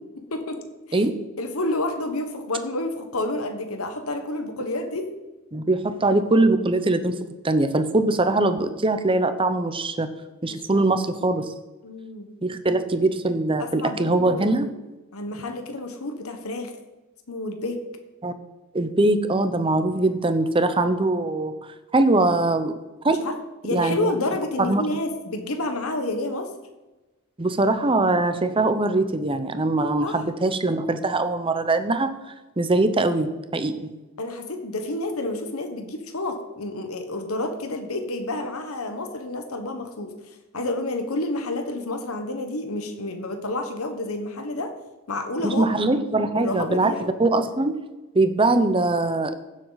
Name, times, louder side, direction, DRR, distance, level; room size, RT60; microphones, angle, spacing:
voice 1, 0.2-0.6 0.9-1.0 1.4-5.1 10.5-10.8 11.8-12.3 13.6-14.6 15.1-16.7 17.3-17.8 23.1-23.3 23.6-26.5 30.0-30.2 34.2-44.7 45.1-45.7 46.3-47.1, left 2 dB, 75° left, 6 dB, 1.2 m, -29 dB
voice 2, 5.5-7.1 7.4-10.1 10.4-11.5 12.4-14.7 18.2-18.3 18.7-21.5 21.9-22.7 23.0-23.2 23.7-24.1 24.6-24.8 27.4-32.1 32.6-33.9 45.4-46.9 47.2-47.8 48.1-49.4, right 2 dB, 25° right, 10 dB, 0.7 m, -22 dB
16.0 x 7.5 x 4.1 m, 1.1 s
head